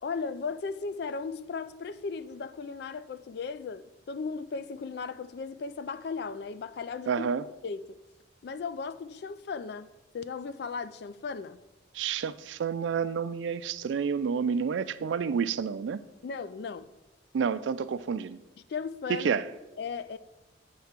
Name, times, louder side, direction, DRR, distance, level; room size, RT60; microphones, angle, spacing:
voice 1, 0.0-7.3 7.6-8.0 8.4-11.6 16.2-16.9 18.7-19.3 19.8-20.2, left 5 dB, 55° left, 0.3 m, -36 dB
voice 2, 7.1-7.4 11.9-16.0 17.3-18.4 19.1-19.5, right 6 dB, 75° right, 0.3 m, -29 dB
8.6 x 3.4 x 5.8 m
head